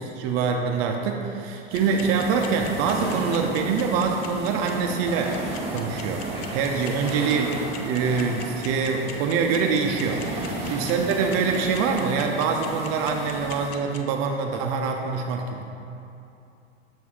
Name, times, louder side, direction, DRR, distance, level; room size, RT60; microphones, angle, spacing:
voice 1, 0.0-5.3 5.7-6.3 6.5-15.6, right 5 dB, 40° right, 3 dB, 0.5 m, -25 dB
sound 1, 1.7-14.0, left 10 dB, 65° left, 0.7 m, -40 dB
sound 2, 1.7-13.7, right 2 dB, 20° right, 1.1 m, -34 dB
voice 2, 10.4-10.8, left 2 dB, 15° left, -1 dB, 0.7 m, -41 dB
7.1 x 3.1 x 5.6 m, 2.7 s
hypercardioid pair, 120°, 34 cm